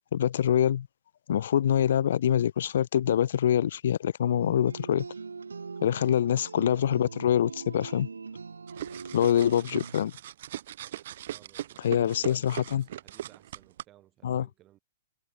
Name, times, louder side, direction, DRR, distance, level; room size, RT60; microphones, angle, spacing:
voice 1, 0.1-0.9 1.3-5.0 5.8-8.1 9.1-10.1 11.8-12.8 14.2-14.5, left 10 dB, 60° left, 0.5 m, -25 dB
sound 1, 4.4-10.0, right 4 dB, 80° right, 3.0 m, -41 dB
sound 2, 8.7-13.8, right 12 dB, 55° right, 2.7 m, -39 dB
voice 2, 8.8-9.3 11.3-14.8, right 14 dB, 30° right, 4.6 m, -59 dB
hypercardioid pair, 120°, 0 cm